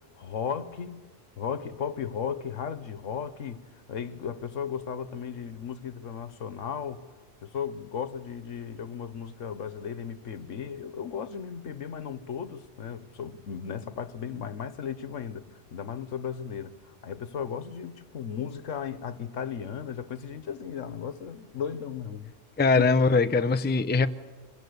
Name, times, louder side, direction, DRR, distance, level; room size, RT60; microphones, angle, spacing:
voice 1, 0.2-1.0 1.4-3.6 3.9-7.0 7.4-16.7 17.0-22.3 22.8-22.9, left 7 dB, 85° left, 13 dB, 1.4 m, -35 dB
voice 2, 22.6-24.1, left 4 dB, 10° left, 10 dB, 0.5 m, -21 dB
25.5 x 21.5 x 8.0 m, 1.3 s
omnidirectional pair, 1.3 m